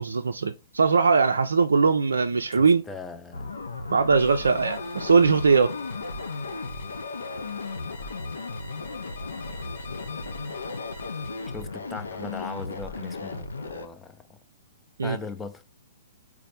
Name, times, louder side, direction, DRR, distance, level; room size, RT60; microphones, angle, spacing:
voice 1, 0.0-2.8 3.9-5.7 15.0-15.2, right 5 dB, 70° right, 0.3 m, -21 dB
voice 2, 2.5-3.5 11.5-14.4 15.0-15.6, left 4 dB, 10° left, 0.4 m, -39 dB
sound 1, 3.3-13.9, left 3 dB, 75° left, 0.5 m, -35 dB
sound 2, 4.1-11.6, left 6 dB, 55° left, 0.9 m, -44 dB
4.1 x 2.0 x 4.2 m
figure-of-eight pair, 115°, 0 cm